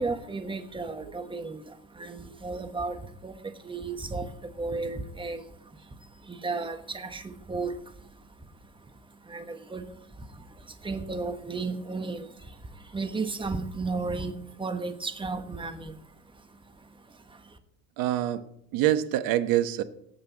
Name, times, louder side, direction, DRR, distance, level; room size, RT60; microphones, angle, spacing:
voice 1, 0.0-17.6, right 3 dB, 15° right, 8 dB, 1.3 m, -35 dB
voice 2, 18.0-18.4 18.7-19.8, right 13 dB, 60° right, 12 dB, 1.1 m, -25 dB
18.0 x 7.9 x 4.1 m, 0.74 s
supercardioid pair, 90°, 39 cm